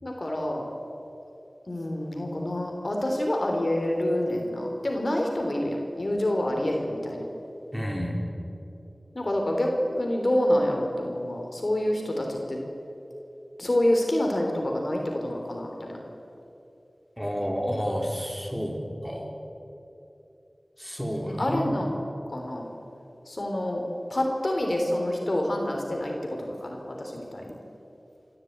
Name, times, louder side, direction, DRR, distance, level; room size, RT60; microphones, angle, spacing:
voice 1, 0.0-0.7 1.7-7.2 9.2-12.6 13.6-16.0 21.3-22.0 22.3-22.7 23.3-23.8 24.1-27.6, left 1 dB, 50° left, 1 dB, 3.5 m, -27 dB
voice 2, 7.7-8.2 17.2-19.3 20.8-21.7, equal, ahead, 0 dB, 4.2 m, -30 dB
27.5 x 12.5 x 8.8 m, 2.9 s
wide cardioid pair, 45°, 0 cm